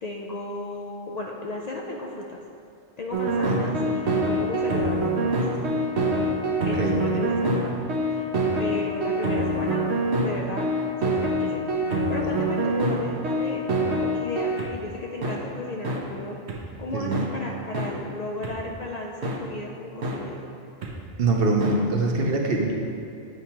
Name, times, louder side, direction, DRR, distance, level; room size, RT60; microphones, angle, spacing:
voice 1, 0.0-2.4 3.0-5.4 6.6-8.3 8.6-9.9 10.2-10.7 11.0-16.4 16.8-20.4, left 2 dB, 55° left, -1 dB, 0.4 m, -34 dB
sound 1, 3.1-14.7 15.2-15.4 15.8-16.0 16.5-16.6 17.1-17.3 17.7-17.9 18.4-18.5 19.2-19.4 20.0-20.2 20.8-20.9 21.6-21.7, right 1 dB, 85° right, 1.1 m, -25 dB
voice 2, 6.6-7.4 16.9-17.2 21.2-22.9, right 3 dB, 65° right, 1 dB, 0.9 m, -24 dB
9.1 x 4.6 x 2.9 m, 2.5 s
omnidirectional pair, 1.1 m